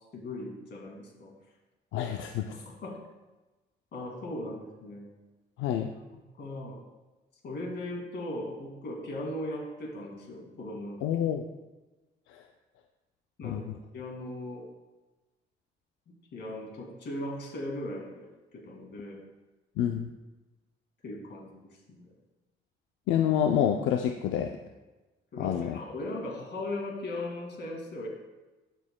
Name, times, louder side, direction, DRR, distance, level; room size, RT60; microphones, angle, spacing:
voice 1, 0.1-1.3 2.5-3.0 3.9-5.1 6.4-6.8 7.4-11.0 13.4-13.7 13.9-14.7 16.3-18.3 18.5-19.2 21.0-21.5 21.9-22.1 25.3-28.1, left 1 dB, 60° left, 0 dB, 2.3 m, -38 dB
voice 2, 1.9-2.5 5.6-5.9 11.0-11.4 13.4-13.6 19.8-20.1 23.1-24.6 25.4-25.8, left 9 dB, 85° left, 4 dB, 0.5 m, -27 dB
12.0 x 6.5 x 2.2 m, 1.1 s
cardioid pair, 90°, 20 cm